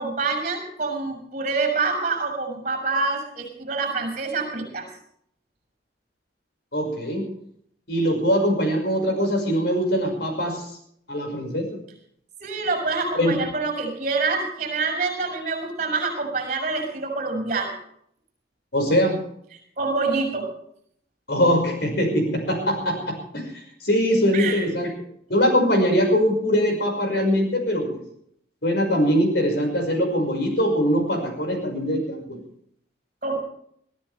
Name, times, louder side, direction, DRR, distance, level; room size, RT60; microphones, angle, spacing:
voice 1, 0.0-4.9 12.4-17.8 19.8-20.5 24.3-24.7 33.2-33.4, right 3 dB, 40° right, 4 dB, 6.4 m, -26 dB
voice 2, 6.7-7.3 7.9-10.7 11.1-11.7 13.1-13.4 18.7-19.2 21.3-23.5 23.8-24.9 25.3-28.0 28.6-32.4, equal, 60° left, 3 dB, 5.8 m, -22 dB
22.0 x 14.0 x 3.4 m, 0.67 s
head